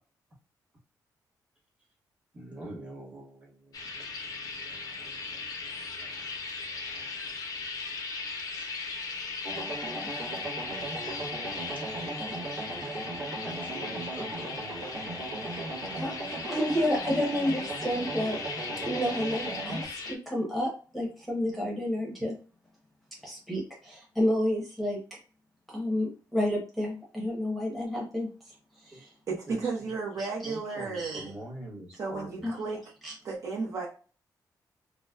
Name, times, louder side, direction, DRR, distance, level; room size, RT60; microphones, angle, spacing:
voice 1, 2.3-8.0 8.6-9.0 9.8-10.1 13.4-14.5 28.9-29.6 30.4-32.5, right 1 dB, 20° right, 1.3 m, -46 dB
sound 1, 3.7-20.2, left 4 dB, 55° left, 0.5 m, -38 dB
sound 2, 9.4-19.9, right 2 dB, 70° right, 1.3 m, -37 dB
voice 2, 16.0-18.4 18.8-22.3 23.2-25.0 25.7-28.6 28.8-29.1 30.2-30.6 30.9-31.2 32.4-32.6 33.0-33.1, left 1 dB, ahead, 0.9 m, -30 dB
voice 3, 29.3-31.3 32.0-32.8 33.2-33.9, right 4 dB, 45° right, 0.8 m, -33 dB
4.0 x 2.1 x 2.3 m
wide cardioid pair, 160°, 7 cm